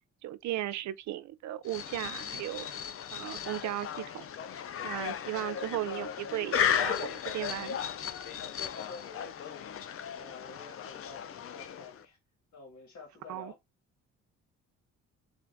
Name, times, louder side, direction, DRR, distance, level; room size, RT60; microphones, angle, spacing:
voice 1, 0.2-2.7 3.1-4.2 4.6-7.8 13.3-13.5, right 14 dB, 70° right, 0.4 m, -36 dB
sound 1, 1.7-12.1, left 8 dB, 50° left, 0.5 m, -35 dB
voice 2, 8.4-9.7 10.2-12.2 12.5-13.6, left 4 dB, 65° left, 1.8 m, -49 dB
3.8 x 2.5 x 3.4 m
cardioid pair, 90°, 30 cm